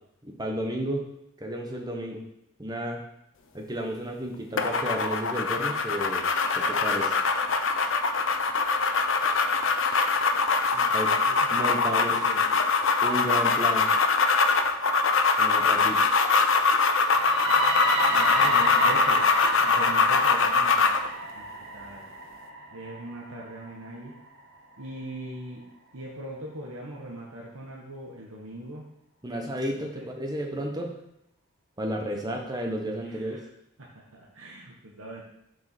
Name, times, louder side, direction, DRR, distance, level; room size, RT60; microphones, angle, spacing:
voice 1, 0.2-1.0 1.4-2.2 2.6-3.0 3.5-6.2 6.5-7.1 10.9-11.1 11.5-12.2 13.0-13.9 15.4-16.1 29.2-30.9 31.8-33.4, equal, 20° right, 2 dB, 1.1 m, -32 dB
sound 1, 4.6-21.1, left 4 dB, 65° left, 0.7 m, -23 dB
voice 2, 10.7-12.5 18.1-19.2 19.6-21.0 21.3-22.0 22.7-24.1 24.8-25.6 25.9-28.9 29.7-30.1 32.2-32.4 33.0-33.4 33.8-35.2, right 1 dB, 80° right, -3 dB, 1.5 m, -41 dB
sound 2, 16.9-24.8, right 2 dB, 55° right, 1.6 m, -33 dB
6.9 x 5.3 x 6.0 m, 0.79 s
head